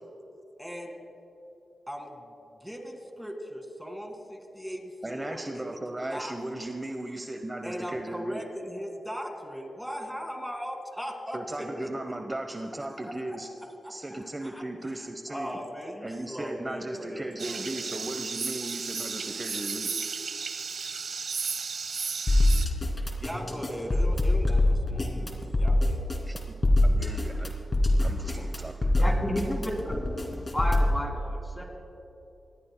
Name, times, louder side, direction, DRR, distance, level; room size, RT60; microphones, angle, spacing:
voice 1, 0.6-1.0 1.9-2.3 2.6-5.8 6.0-6.4 7.6-12.2 13.0-13.4 13.8-18.2 23.2-26.0, equal, ahead, 3 dB, 2.0 m, -39 dB
voice 2, 5.0-8.4 11.3-13.5 13.9-15.6 16.0-19.9 26.3-26.4 26.8-27.6 28.0-28.7, right 1 dB, 25° right, 5 dB, 0.9 m, -36 dB
sound 1, 17.4-22.7, right 5 dB, 75° right, 0.9 m, -34 dB
sound 2, 22.3-31.0, left 1 dB, 35° left, 2.4 m, -24 dB
voice 3, 29.0-30.0 30.5-31.6, equal, 15° left, 0 dB, 3.0 m, -31 dB
25.0 x 19.0 x 2.2 m, 2.8 s
cardioid pair, 80°, 0 cm